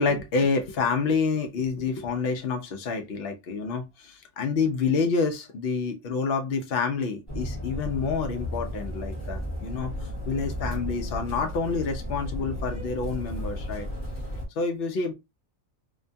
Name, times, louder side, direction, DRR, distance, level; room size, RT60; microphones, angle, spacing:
voice 1, 0.0-13.9 14.6-15.1, left 4 dB, 65° left, 0.6 m, -28 dB
sound 1, 7.3-14.4, left 1 dB, 30° left, 0.8 m, -34 dB
2.8 x 2.3 x 2.6 m
omnidirectional pair, 1.8 m